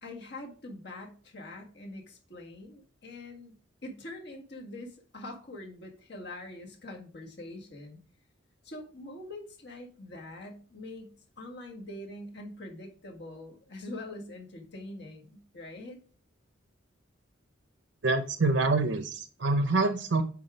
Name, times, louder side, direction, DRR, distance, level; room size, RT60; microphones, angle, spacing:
voice 1, 0.0-3.5 3.8-8.0 8.6-16.0, left 1 dB, 55° left, 1 dB, 1.7 m, -44 dB
voice 2, 18.0-20.2, right 3 dB, 65° right, 9 dB, 0.6 m, -26 dB
8.7 x 3.6 x 4.9 m, 0.41 s
head